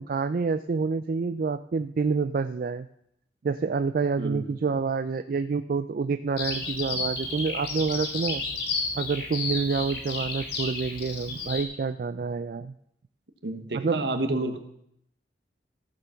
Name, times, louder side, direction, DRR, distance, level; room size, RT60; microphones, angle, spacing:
voice 1, 0.0-2.9 3.4-8.4 8.9-12.7 13.7-14.1, right 4 dB, 50° right, 11 dB, 0.3 m, -28 dB
voice 2, 4.2-4.5 13.4-14.6, right 2 dB, 65° right, 8 dB, 1.2 m, -29 dB
Bird vocalization bird call bird song, 6.4-11.6, left 3 dB, 60° left, 2.8 m, -32 dB
14.5 x 6.9 x 5.7 m, 0.74 s
head